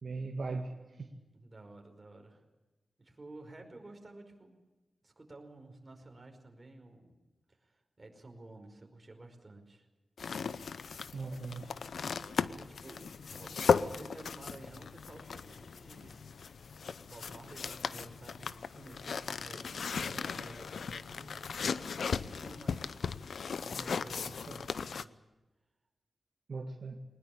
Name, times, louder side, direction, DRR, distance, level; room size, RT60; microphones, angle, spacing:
voice 1, 0.0-1.1 11.1-11.7 20.0-20.2 24.5-24.6 26.5-27.0, right 3 dB, 60° right, 2 dB, 2.0 m, -39 dB
voice 2, 1.3-2.4 3.0-4.6 5.0-7.2 7.5-9.9 12.4-16.2 17.1-19.6 19.9-21.7 22.0-23.1 23.5-25.1, right 2 dB, 30° right, 3 dB, 5.2 m, -52 dB
sound 1, 10.2-25.0, left 6 dB, 80° left, 0.7 m, -36 dB
21.0 x 20.0 x 8.6 m, 1.1 s
wide cardioid pair, 100°, 0 cm